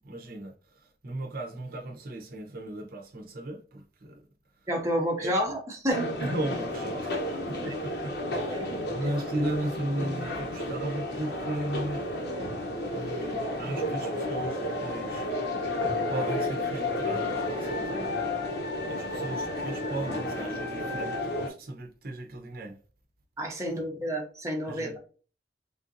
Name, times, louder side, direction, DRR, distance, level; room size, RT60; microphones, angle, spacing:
voice 1, 0.0-4.2 5.2-5.3 6.2-12.1 12.9-15.3 16.1-18.1 18.9-22.8 23.7-23.8 24.7-25.0, right 1 dB, 55° right, 0.7 m, -36 dB
voice 2, 4.7-6.0 7.6-7.7 8.5-8.7 23.4-25.0, equal, 15° right, 0.6 m, -30 dB
sound 1, 5.9-21.5, left 1 dB, 60° left, 0.9 m, -32 dB
3.6 x 2.5 x 2.5 m
head